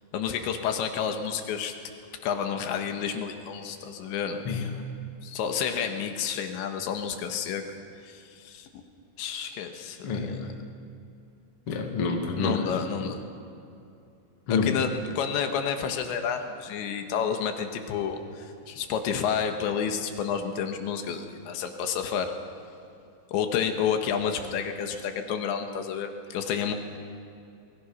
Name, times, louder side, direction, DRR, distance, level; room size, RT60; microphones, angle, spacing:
voice 1, 0.1-1.7 2.2-4.4 5.2-7.6 8.0-8.8 9.2-10.4 12.4-13.2 14.6-22.3 23.3-26.7, left 7 dB, 85° left, 5 dB, 3.7 m, -30 dB
voice 2, 4.4-4.9 10.0-10.6 11.7-13.1 14.5-14.8, left 4 dB, 40° left, 2 dB, 2.2 m, -29 dB
28.5 x 22.5 x 5.6 m, 2.6 s
omnidirectional pair, 5.1 m